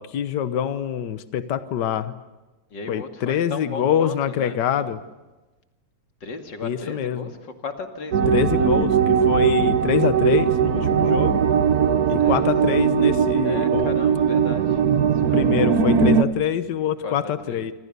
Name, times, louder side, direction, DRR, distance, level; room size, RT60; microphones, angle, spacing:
voice 1, 0.1-2.1 2.9-5.0 6.6-7.3 8.3-11.4 12.1-13.9 15.3-17.7, left 9 dB, 80° left, 12 dB, 0.9 m, -25 dB
voice 2, 2.7-5.0 6.2-8.7 12.2-12.5 13.4-14.8 15.3-15.4 17.0-17.7, left 4 dB, 40° left, 6 dB, 2.7 m, -36 dB
sound 1, 8.1-16.2, right 7 dB, 65° right, 0.9 m, -19 dB
26.5 x 26.5 x 6.8 m, 1.1 s
omnidirectional pair, 3.4 m